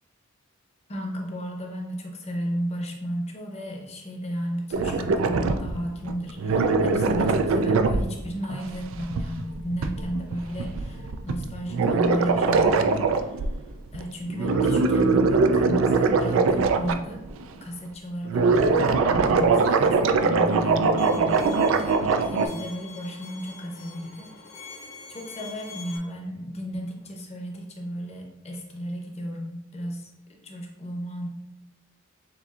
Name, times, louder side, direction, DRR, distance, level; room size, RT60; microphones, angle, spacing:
voice 1, 0.9-13.4 13.9-17.2 17.6-24.3 24.6-31.3, equal, 30° left, 1 dB, 0.7 m, -34 dB
sound 1, 4.7-5.8 6.0-6.1 6.4-13.5 13.9-14.0 14.3-17.4 18.2-22.5, right 4 dB, 70° right, 0.3 m, -22 dB
Bowed string instrument, 21.0-26.0, left 4 dB, 65° left, 0.9 m, -45 dB
6.9 x 2.5 x 2.4 m, 0.89 s
head